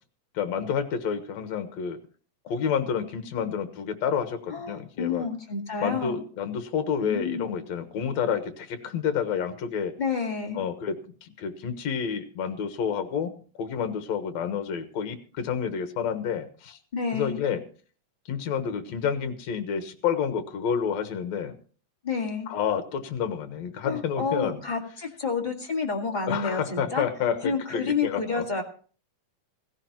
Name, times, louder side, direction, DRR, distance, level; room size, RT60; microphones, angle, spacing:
voice 1, 0.3-2.0 2.5-5.3 5.8-9.9 10.6-16.8 17.1-17.6 18.3-21.6 22.5-24.6 26.3-28.4, left 7 dB, 70° left, 9 dB, 2.5 m, -29 dB
voice 2, 4.5-6.2 7.0-7.5 10.0-10.6 16.9-17.4 22.0-22.5 23.8-27.0 27.4-28.6, left 5 dB, 20° left, 1 dB, 1.6 m, -29 dB
16.0 x 16.0 x 3.0 m, 0.41 s
omnidirectional pair, 3.4 m